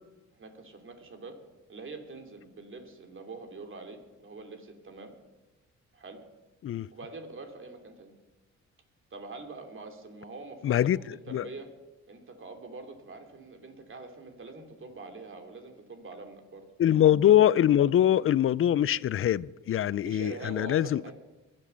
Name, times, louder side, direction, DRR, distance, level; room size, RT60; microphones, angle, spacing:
voice 1, 0.3-1.4 1.7-5.1 5.9-6.2 6.9-8.2 9.1-11.7 12.1-16.7 20.0-21.1, right 3 dB, 40° right, 2.9 m, -44 dB
voice 2, 10.6-11.5 16.8-21.1, left 11 dB, 45° left, 0.5 m, -23 dB
22.0 x 7.7 x 6.9 m
cardioid pair, 90°, 30 cm